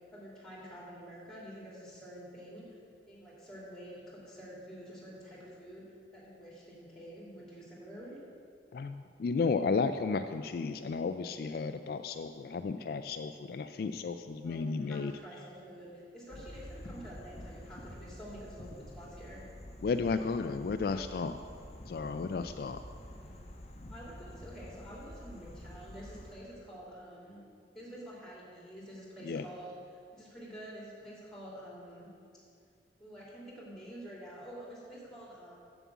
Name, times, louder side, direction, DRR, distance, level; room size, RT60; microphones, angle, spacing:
voice 1, 0.1-2.8 3.1-8.2 12.4-12.6 14.4-19.4 23.0-23.4 23.9-27.4 27.7-32.1 33.0-35.6, equal, 5° left, -5 dB, 2.6 m, -48 dB
voice 2, 8.7-15.1 19.8-21.4 21.9-22.8 29.2-29.4, left 4 dB, 55° left, 8 dB, 0.3 m, -33 dB
sound 1, 16.3-26.3, left 1 dB, 35° left, 0.9 m, -48 dB
7.3 x 7.2 x 8.3 m, 2.4 s
head